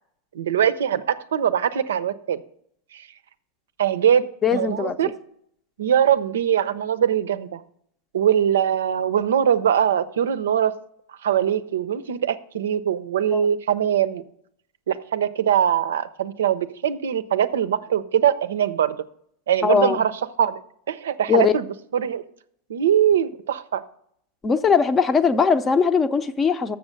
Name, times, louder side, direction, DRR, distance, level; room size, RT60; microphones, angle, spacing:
voice 1, 0.3-2.4 2.9-3.1 3.8-4.3 4.5-5.1 5.8-7.6 8.1-10.8 11.2-14.2 14.9-19.0 19.5-20.1 20.4-20.6 20.9-21.6 21.9-22.2 22.7-23.8, right 9 dB, 85° right, 13 dB, 0.5 m, -22 dB
voice 2, 4.4-5.1 13.3-13.5 19.6-20.0 21.3-21.5 24.4-26.8, left 6 dB, 20° left, 11 dB, 0.6 m, -20 dB
7.0 x 6.2 x 6.5 m, 0.68 s
hypercardioid pair, 120°, 0 cm